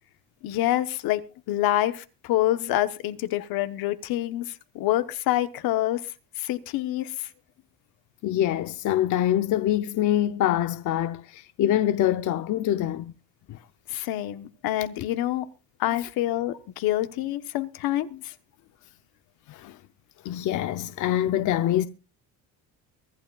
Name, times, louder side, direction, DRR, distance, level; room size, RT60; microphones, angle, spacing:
voice 1, 0.4-1.2 1.5-6.0 6.4-7.3 13.9-15.5 15.8-18.3, left 14 dB, 75° left, 1.1 m, -27 dB
voice 2, 8.2-13.1 13.5-13.6 16.0-16.1 18.1-18.2 19.5-19.8 20.2-21.9, left 12 dB, 55° left, 0.7 m, -25 dB
24.0 x 11.5 x 2.4 m
cardioid pair, 125°, 37 cm